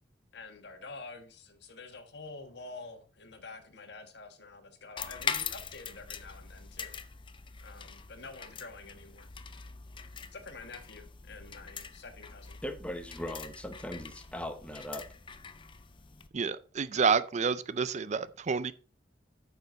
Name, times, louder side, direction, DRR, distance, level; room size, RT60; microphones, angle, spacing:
voice 1, 0.3-6.9 7.6-9.3 10.3-12.6, left 3 dB, 65° left, 1.4 m, -48 dB
sound 1, 5.0-16.3, left 6 dB, 25° left, 0.6 m, -42 dB
voice 2, 12.6-15.1, left 1 dB, 5° left, 1.0 m, -39 dB
voice 3, 16.3-18.7, right 5 dB, 40° right, 0.4 m, -29 dB
9.2 x 6.8 x 3.9 m
head